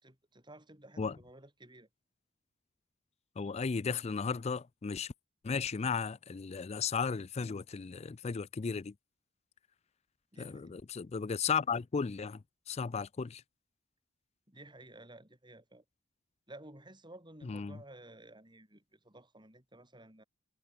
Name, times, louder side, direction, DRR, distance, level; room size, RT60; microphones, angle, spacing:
voice 1, 0.0-1.9 10.3-10.8 14.5-15.8 16.5-20.2, right 1 dB, 20° right, 7.4 m, -54 dB
voice 2, 3.4-5.1 5.4-8.9 10.4-12.4 12.7-13.4 17.4-17.8, left 5 dB, 30° left, 0.4 m, -35 dB
head